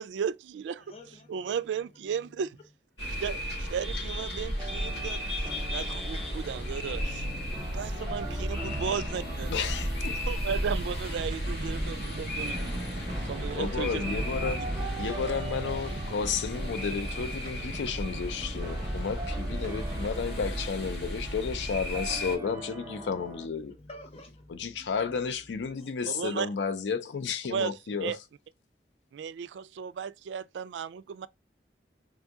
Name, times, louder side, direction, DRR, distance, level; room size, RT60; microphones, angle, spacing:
voice 1, 0.0-0.8 1.3-2.6 3.2-7.3 7.7-9.5 10.3-12.9 13.2-14.0 26.0-26.5 27.5-27.7 28.0-28.2 29.1-31.3, right 7 dB, 85° right, 0.3 m, -35 dB
voice 2, 0.8-1.6 7.9-8.5 18.6-19.1 23.8-24.4 25.7-25.9, left 2 dB, 35° left, 0.8 m, -49 dB
sound 1, 3.0-22.3, equal, 65° left, 1.8 m, -34 dB
sound 2, 4.6-23.5, right 2 dB, 15° right, 0.7 m, -44 dB
sound 3, 8.6-25.7, right 1 dB, 45° right, 0.8 m, -46 dB
voice 3, 9.5-10.2 13.5-14.7 15.0-23.8 24.6-28.2, left 5 dB, 85° left, 0.5 m, -32 dB
3.7 x 2.7 x 3.5 m
head